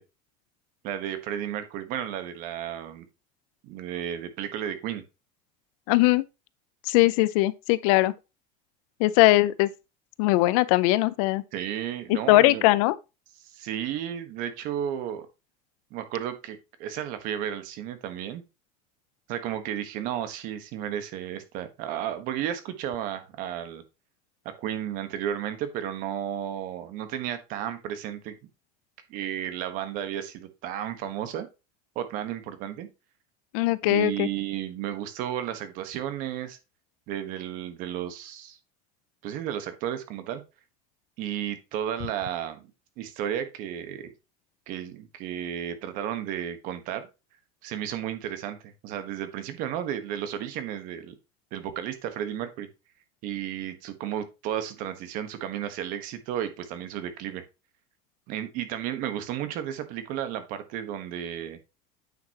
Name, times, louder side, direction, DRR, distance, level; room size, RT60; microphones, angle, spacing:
voice 1, 0.8-3.1 3.6-5.0 11.5-12.6 13.4-15.3 15.9-18.4 19.3-23.8 24.6-28.4 29.1-31.5 31.9-32.9 33.8-36.6 37.1-38.6 39.2-40.4 41.2-42.7 43.0-44.1 44.7-47.1 47.6-51.1 51.5-52.7 53.2-57.4 58.3-61.6, right 10 dB, 50° right, 1.3 m, -33 dB
voice 2, 5.9-6.2 6.9-8.1 9.0-9.7 10.2-11.4 12.1-13.0 33.5-34.3, left 18 dB, 70° left, 0.6 m, -20 dB
9.3 x 5.8 x 2.9 m
cardioid pair, 175°, 18 cm